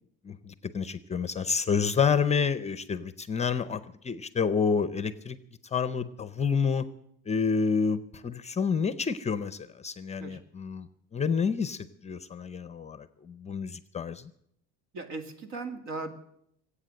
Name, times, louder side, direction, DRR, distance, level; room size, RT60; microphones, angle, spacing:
voice 1, 0.2-5.4 5.7-6.9 7.3-14.3, left 6 dB, 20° left, 14 dB, 0.6 m, -29 dB
voice 2, 14.9-16.1, right 3 dB, 60° right, 7 dB, 2.2 m, -37 dB
21.0 x 8.5 x 7.7 m, 0.76 s
cardioid pair, 120°, 31 cm